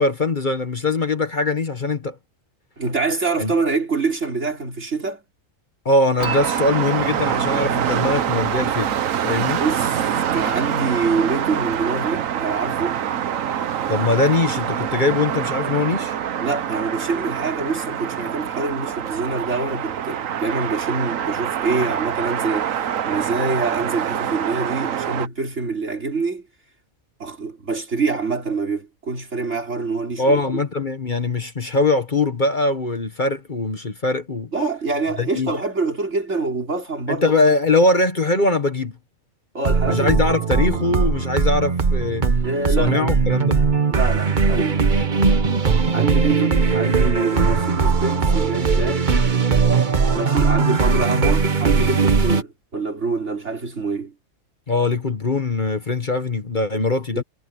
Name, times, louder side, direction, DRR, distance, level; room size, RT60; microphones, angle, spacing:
voice 1, 0.0-2.2 3.4-3.5 5.8-8.9 9.2-9.6 13.9-16.2 30.2-34.5 35.2-35.5 37.1-39.0 39.9-42.3 42.8-43.6 54.7-57.2, left 2 dB, 40° left, 1.5 m, -21 dB
voice 2, 2.8-5.2 9.6-10.1 10.3-13.0 16.4-22.7 23.0-26.5 27.2-30.4 34.5-37.2 39.5-40.2 40.6-40.8 42.4-43.2 43.9-44.8 45.9-49.1 50.1-54.1 57.1-57.2, right 4 dB, 60° right, 4.1 m, -25 dB
Dishes pots and pans / Chink clink, 6.2-9.4, right 4 dB, 80° left, 5.1 m, -35 dB
sound 1, 6.2-25.3, right 9 dB, 75° right, 1.3 m, -25 dB
sound 2, 39.6-52.4, right 5 dB, 40° right, 1.2 m, -19 dB
omnidirectional pair, 1.4 m